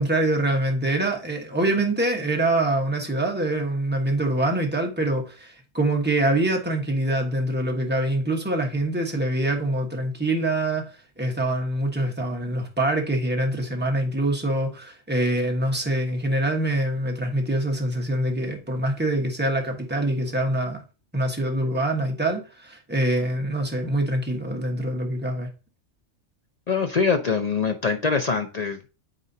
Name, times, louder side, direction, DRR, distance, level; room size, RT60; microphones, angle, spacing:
voice 1, 0.0-10.8 11.2-20.8 21.1-25.5, right 1 dB, 10° right, 1.1 m, -25 dB
voice 2, 26.7-28.9, left 5 dB, 50° left, 0.5 m, -24 dB
8.8 x 4.2 x 2.7 m
omnidirectional pair, 1.3 m